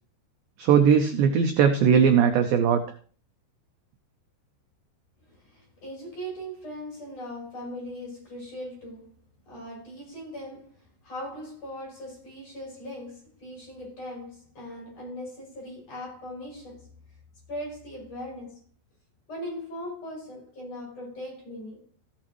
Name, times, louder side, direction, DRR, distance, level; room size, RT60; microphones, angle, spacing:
voice 1, 0.6-2.8, right 7 dB, 80° right, 2.1 m, -19 dB
voice 2, 5.2-16.9 17.5-18.6 19.3-21.8, equal, 35° left, 7.0 m, -39 dB
14.5 x 8.8 x 3.1 m
omnidirectional pair, 4.9 m